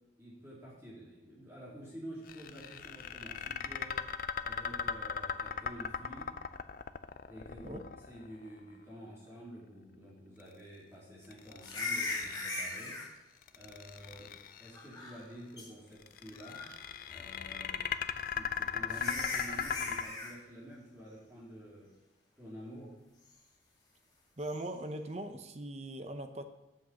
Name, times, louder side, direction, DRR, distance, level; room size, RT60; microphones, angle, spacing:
voice 1, 0.2-4.0 4.4-6.3 7.3-7.8 8.1-12.9 13.5-14.3 14.6-16.6 17.1-17.9 18.1-21.9 22.4-22.9, equal, 15° right, -7 dB, 2.5 m, -49 dB
sound 1, 2.3-8.5 11.3-12.9 13.4-14.8 16.0-20.0, left 7 dB, 45° left, 0.4 m, -38 dB
sound 2, 11.6-13.1 14.7-15.3 15.6-15.7 16.3-16.8 18.2-18.3 18.9-20.3 24.4-24.6, left 3 dB, 20° left, 1.8 m, -38 dB
voice 2, 24.4-26.4, right 1 dB, 35° right, 7 dB, 0.7 m, -40 dB
7.8 x 6.1 x 7.0 m, 0.96 s
head